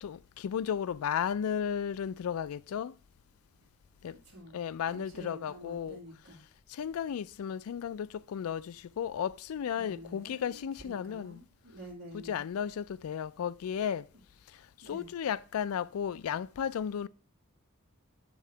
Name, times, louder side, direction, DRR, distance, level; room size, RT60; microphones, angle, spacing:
voice 1, 0.0-2.9 4.0-4.1 4.5-6.0 6.8-11.4 12.1-14.0 14.9-17.1, left 8 dB, 85° left, 0.3 m, -34 dB
voice 2, 4.1-4.6 4.9-6.4 9.7-12.4 14.8-15.1, equal, 60° right, 2.3 m, -49 dB
9.4 x 3.7 x 4.4 m
head